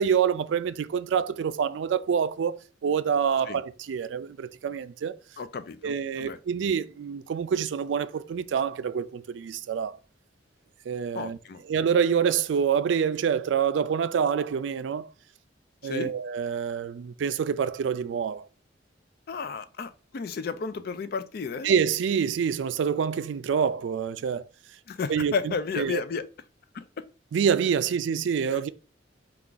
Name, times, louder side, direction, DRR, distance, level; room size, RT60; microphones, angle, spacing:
voice 1, 0.0-5.1 5.8-10.0 10.9-11.4 11.7-15.1 15.8-18.5 21.6-24.4 25.1-26.0 27.3-28.7, right 7 dB, 80° right, 0.3 m, -26 dB
voice 2, 5.4-6.4 11.1-11.6 15.8-16.1 19.3-21.7 24.9-26.3 26.7-27.0, left 5 dB, 55° left, 0.4 m, -33 dB
4.5 x 2.4 x 3.7 m
head